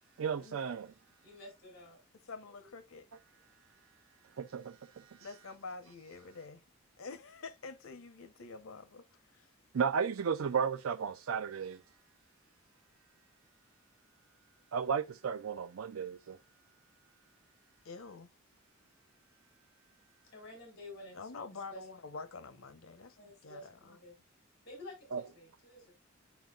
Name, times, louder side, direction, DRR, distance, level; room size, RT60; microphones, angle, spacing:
voice 1, 0.2-0.9 4.4-5.3 9.7-11.8 14.7-16.4 25.1-25.2, right 6 dB, 80° right, 0.4 m, -34 dB
voice 2, 1.2-2.0 20.3-21.8 23.1-24.2 24.6-25.9, left 1 dB, 55° left, 4.6 m, -51 dB
voice 3, 2.3-3.1 5.2-6.6 7.0-9.5 17.8-18.3 21.1-23.7, left 4 dB, 85° left, 1.0 m, -47 dB
10.5 x 4.5 x 2.4 m
head